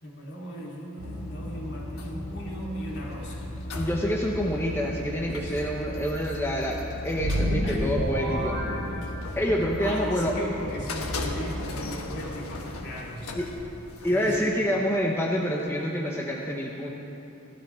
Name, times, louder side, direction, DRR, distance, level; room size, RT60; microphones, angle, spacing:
voice 1, 0.0-3.5 5.2-5.6 7.6-7.8 8.2-8.4 8.9-9.0 9.5-13.4 14.1-14.6, equal, 55° left, -3 dB, 2.5 m, -37 dB
sound 1, 1.0-14.4, left 1 dB, 85° left, 1.3 m, -36 dB
voice 2, 3.8-6.8 7.0-8.6 9.4-10.3 13.3-13.5 14.0-16.9, equal, 10° left, -2 dB, 0.9 m, -27 dB
sound 2, 7.1-9.7, equal, 85° right, 3.4 m, -29 dB
15.5 x 13.5 x 4.4 m, 2.9 s
head